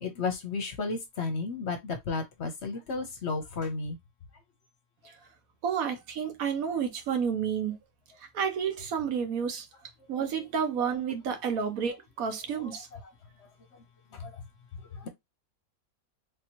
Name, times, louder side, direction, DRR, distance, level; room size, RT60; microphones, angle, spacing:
voice 1, 0.0-4.0 14.1-14.3 15.0-15.1, left 4 dB, 55° left, 0.9 m, -33 dB
voice 2, 5.6-7.8 8.3-9.7 10.1-12.9, right 7 dB, 75° right, 1.2 m, -30 dB
3.5 x 2.9 x 2.9 m
omnidirectional pair, 1.5 m